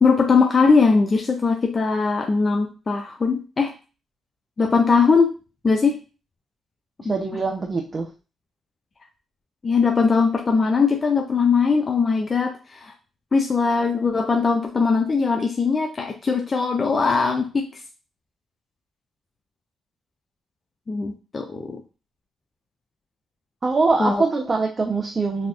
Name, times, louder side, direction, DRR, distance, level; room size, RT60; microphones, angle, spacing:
voice 1, 0.0-3.7 4.6-5.3 5.6-6.0 7.0-7.4 9.6-12.9 13.3-17.7 20.9-21.8 24.0-24.2, left 4 dB, 35° left, 2 dB, 0.4 m, -20 dB
voice 2, 7.1-8.1 23.6-25.5, right 3 dB, 35° right, 2 dB, 0.5 m, -23 dB
4.2 x 2.3 x 2.3 m, 0.33 s
cardioid pair, 80°, 0 cm